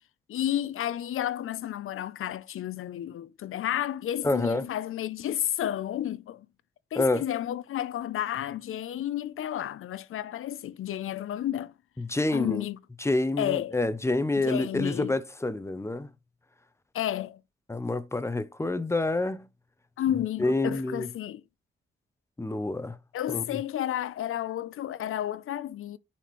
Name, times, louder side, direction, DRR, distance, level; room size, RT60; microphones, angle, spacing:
voice 1, 0.3-6.5 6.9-11.7 12.3-12.8 13.4-13.8 14.4-15.1 16.9-17.4 20.0-21.4 23.1-26.0, left 11 dB, 90° left, 0.5 m, -31 dB
voice 2, 4.2-4.6 6.9-7.2 12.0-12.6 13.0-16.1 17.7-19.5 20.4-21.1 22.4-23.0 23.3-23.4, left 2 dB, 15° left, 0.5 m, -27 dB
9.1 x 4.2 x 3.0 m
wide cardioid pair, 110°, 21 cm